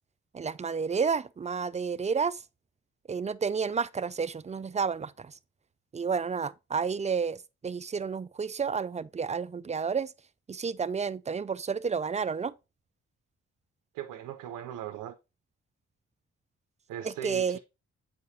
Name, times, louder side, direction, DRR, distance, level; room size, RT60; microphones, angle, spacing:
voice 1, 0.3-2.4 3.1-5.3 5.9-10.1 10.5-12.5 17.0-17.6, right 5 dB, 25° right, 0.3 m, -31 dB
voice 2, 13.9-15.2 16.9-17.6, right 10 dB, 85° right, 0.5 m, -39 dB
7.7 x 4.7 x 2.7 m
supercardioid pair, 45°, 31 cm